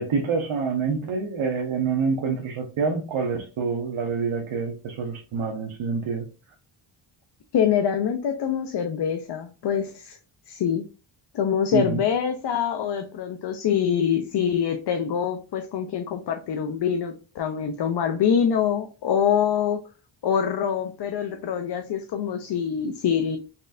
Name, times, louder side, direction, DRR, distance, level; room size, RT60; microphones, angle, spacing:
voice 1, 0.0-6.3 11.7-12.0, right 5 dB, 70° right, 1 dB, 1.0 m, -27 dB
voice 2, 7.5-10.2 10.5-10.9 11.3-19.8 20.2-23.4, left 8 dB, 55° left, 6 dB, 0.6 m, -25 dB
4.2 x 3.2 x 2.5 m, 0.34 s
cardioid pair, 85°, 50 cm